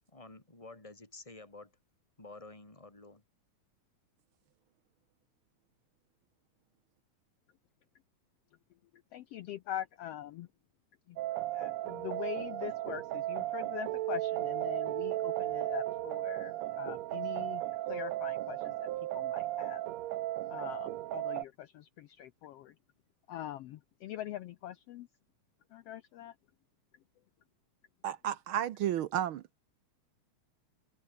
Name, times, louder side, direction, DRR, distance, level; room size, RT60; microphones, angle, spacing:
voice 1, 0.0-1.7 2.2-3.2, left 2 dB, 10° left, 4.5 m, -51 dB
voice 2, 9.1-10.5 11.1-11.2 11.5-17.6 17.9-18.7 19.1-19.8 20.5-22.7 23.3-25.1 25.7-26.3, left 12 dB, 80° left, 1.4 m, -43 dB
sound 1, 11.2-21.5, right 15 dB, 70° right, 1.9 m, -35 dB
voice 3, 28.0-29.4, right 11 dB, 90° right, 1.1 m, -32 dB
omnidirectional pair, 3.5 m